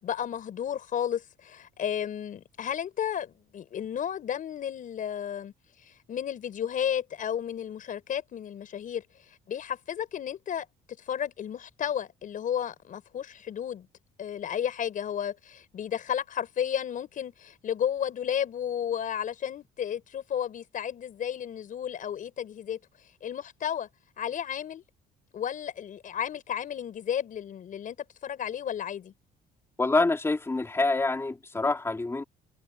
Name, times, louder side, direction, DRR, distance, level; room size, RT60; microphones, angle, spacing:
voice 1, 0.0-5.5 5.8-10.7 11.1-13.9 14.2-22.8 23.2-23.9 24.2-24.8 25.3-28.0 28.2-29.1, left 9 dB, 50° left, 5.3 m, -33 dB
voice 2, 29.8-32.2, left 3 dB, 15° left, 3.2 m, -26 dB
cardioid pair, 110°, 17 cm